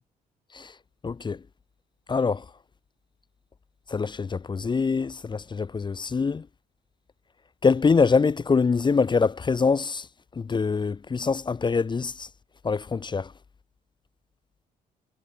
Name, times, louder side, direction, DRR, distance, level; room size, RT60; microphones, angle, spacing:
voice 1, 1.0-1.4 2.1-2.4 3.9-6.4 7.6-10.0 10.4-12.3 12.6-13.3, left 5 dB, 25° left, 0.6 m, -24 dB
supercardioid pair, 70°, 17 cm